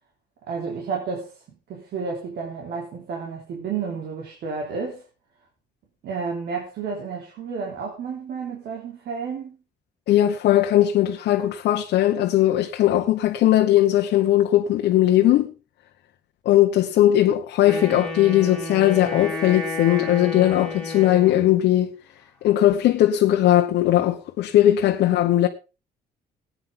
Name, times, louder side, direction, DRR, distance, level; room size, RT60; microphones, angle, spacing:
voice 1, 0.5-5.0 6.0-9.6, right 5 dB, 75° right, 3.5 m, -31 dB
voice 2, 10.1-15.5 16.4-21.9 22.4-25.5, left 13 dB, 90° left, 1.1 m, -19 dB
Wind instrument woodwind instrument, 17.6-21.6, left 2 dB, 5° left, 3.8 m, -32 dB
18.0 x 9.6 x 3.8 m
cardioid pair, 135°, 17 cm